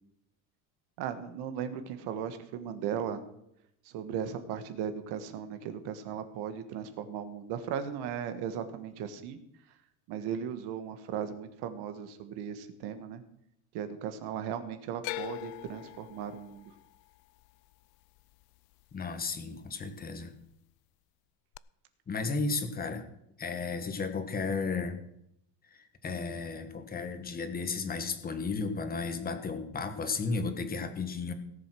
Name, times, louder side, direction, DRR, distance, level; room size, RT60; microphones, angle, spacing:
voice 1, 1.0-3.2 3.8-9.4 10.1-13.2 13.7-16.7, right 8 dB, 60° right, 10 dB, 1.5 m, -37 dB
sound 1, 15.0-19.2 19.5-20.2 21.5-21.6, left 21 dB, 55° left, 0.5 m, -43 dB
voice 2, 18.9-20.3 22.1-23.1 23.4-25.0 25.7-31.3, left 4 dB, 20° left, 8 dB, 1.5 m, -34 dB
17.5 x 7.5 x 6.2 m, 0.78 s
cardioid pair, 145°, 44 cm